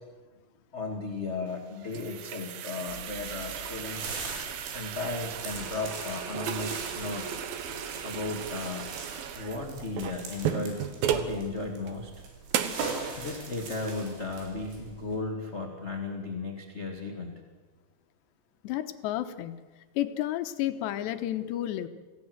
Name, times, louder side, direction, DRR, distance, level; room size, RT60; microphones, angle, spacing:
voice 1, 0.7-4.1 4.5-7.3 8.0-8.8 9.3-12.1 13.2-17.3, left 3 dB, 25° left, 2 dB, 1.4 m, -35 dB
sound 1, 1.5-11.4 11.9-12.0 12.5-12.9, right 9 dB, 65° right, 2.7 m, -35 dB
sound 2, 2.9-15.2, right 4 dB, 85° right, 6.2 m, -41 dB
voice 2, 18.6-19.7 20.0-21.9, left 13 dB, 80° left, 9 dB, 3.2 m, -31 dB
26.5 x 17.0 x 8.0 m, 1.3 s
omnidirectional pair, 5.1 m